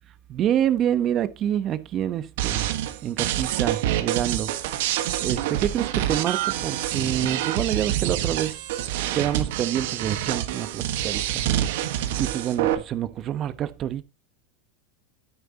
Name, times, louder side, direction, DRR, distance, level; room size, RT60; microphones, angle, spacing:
voice 1, 0.3-2.7 3.0-4.5 5.2-8.6 9.1-11.4 12.2-14.0, right 10 dB, 40° right, 1.1 m, -27 dB
sound 1, 2.4-12.7, right 12 dB, 70° right, 1.5 m, -26 dB
9.5 x 9.4 x 3.0 m
supercardioid pair, 115°, 0 cm